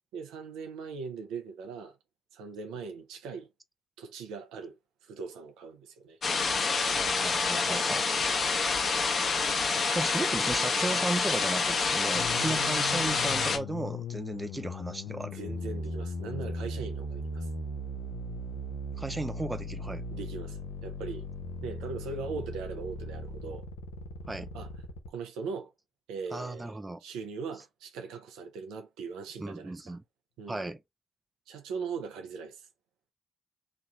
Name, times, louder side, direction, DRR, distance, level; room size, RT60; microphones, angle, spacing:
voice 1, 0.1-2.0 2.3-3.5 4.0-6.2 7.6-7.9 12.4-12.5 15.3-17.5 20.1-21.3 21.6-23.7 24.5-24.7 25.1-25.7 26.1-26.7 27.0-30.0 30.4-30.7 31.5-32.6, right 5 dB, 80° right, 0.6 m, -40 dB
sound 1, 6.2-13.6, left 4 dB, 55° left, 0.9 m, -27 dB
voice 2, 7.0-8.1 9.9-15.4 19.0-20.0 24.3-24.5 26.3-27.0 29.4-30.0 30.5-30.8, right 2 dB, 20° right, 0.6 m, -35 dB
sound 2, 12.1-25.1, left 1 dB, 85° left, 0.7 m, -38 dB
2.9 x 2.4 x 4.1 m
hypercardioid pair, 40°, 0 cm